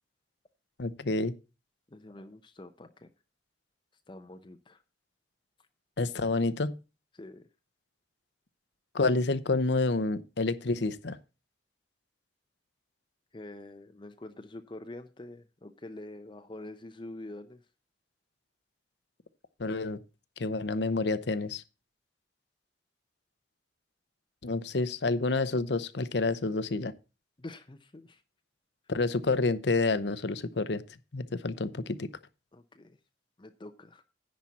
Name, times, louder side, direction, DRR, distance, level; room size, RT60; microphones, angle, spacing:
voice 1, 0.8-1.3 6.0-6.7 8.9-11.2 19.6-20.0 20.4-21.6 24.4-26.9 28.9-30.8 31.1-32.1, left 3 dB, 70° left, 0.8 m, -29 dB
voice 2, 1.9-3.1 4.1-4.8 7.1-7.5 13.3-17.6 27.4-28.2 32.5-33.0 33.4-34.0, left 2 dB, 25° left, 0.6 m, -46 dB
10.5 x 4.3 x 7.2 m
head